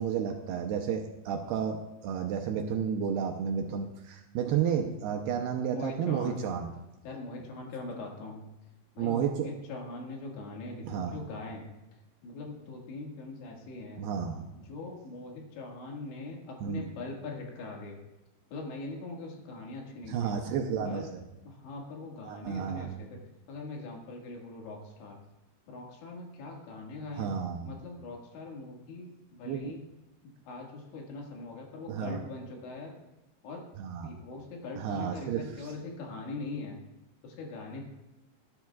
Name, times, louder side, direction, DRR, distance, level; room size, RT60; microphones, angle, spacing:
voice 1, 0.0-6.7 9.0-9.5 10.8-11.2 14.0-14.5 16.6-16.8 20.1-21.2 22.3-22.9 27.1-27.7 29.4-29.8 31.9-32.2 33.8-34.1 34.8-35.7, right 7 dB, 80° right, 3 dB, 2.4 m, -32 dB
voice 2, 5.7-6.4 7.0-8.5 9.0-11.8 12.2-14.0 14.5-18.0 18.5-20.3 20.8-21.1 21.5-23.2 23.5-25.2 25.7-27.3 27.7-29.8 30.2-33.0 33.4-33.7 34.0-36.8 37.2-37.8, left 3 dB, 80° left, -1 dB, 4.1 m, -42 dB
18.0 x 10.5 x 2.4 m, 1.0 s
omnidirectional pair, 5.1 m